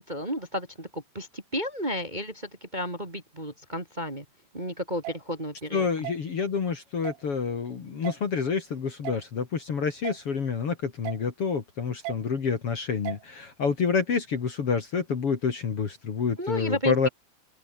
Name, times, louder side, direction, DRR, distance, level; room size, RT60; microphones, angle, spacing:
voice 1, 0.0-4.2 4.5-5.9 16.4-16.9, equal, 20° right, 1.2 m, -32 dB
sound 1, 5.0-5.2 6.0-6.2 7.0-7.2 8.0-8.2 9.0-9.2 10.0-10.2 11.0-11.2 12.0-12.2 13.1-13.2, right 16 dB, 90° right, 3.9 m, -35 dB
voice 2, 5.7-17.1, left 5 dB, 45° left, 2.0 m, -28 dB
open air
omnidirectional pair, 5.8 m